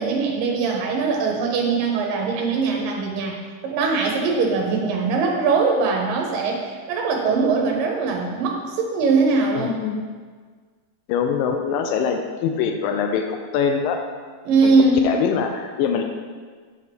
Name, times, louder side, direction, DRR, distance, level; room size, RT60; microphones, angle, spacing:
voice 1, 0.0-3.4 3.6-9.8 14.5-15.1, right 4 dB, 85° right, 0 dB, 2.5 m, -21 dB
voice 2, 9.6-10.0 11.1-14.0 14.6-14.7 15.0-16.0, left 6 dB, 85° left, 5 dB, 2.3 m, -23 dB
7.3 x 6.1 x 3.4 m, 1.5 s
omnidirectional pair, 3.9 m